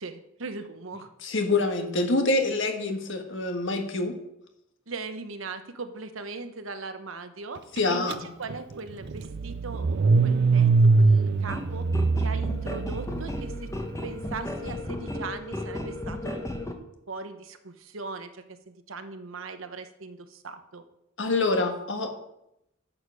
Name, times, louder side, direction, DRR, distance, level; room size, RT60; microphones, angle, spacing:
voice 1, 0.0-1.1 4.9-10.7 11.0-11.9 12.2-13.7 14.0-16.5 17.1-20.8, right 3 dB, 75° right, 8 dB, 1.0 m, -39 dB
voice 2, 1.2-4.2 7.8-8.1 21.2-22.1, left 2 dB, 65° left, 5 dB, 1.4 m, -26 dB
Car / Engine starting, 8.1-8.2 8.5-13.7, right 3 dB, 55° right, 0.5 m, -23 dB
sound 1, 11.5-16.7, left 1 dB, 15° left, 1.0 m, -35 dB
10.5 x 7.2 x 4.8 m, 0.82 s
head